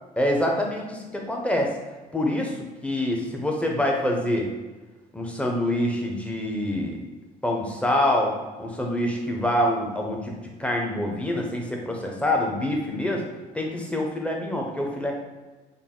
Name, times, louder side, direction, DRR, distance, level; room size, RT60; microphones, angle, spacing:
voice 1, 0.2-1.8 2.1-4.5 5.1-7.0 7.4-13.2 13.5-15.1, left 1 dB, 5° left, 0 dB, 0.7 m, -26 dB
4.0 x 2.1 x 3.7 m, 1.2 s
cardioid pair, 110°, 17 cm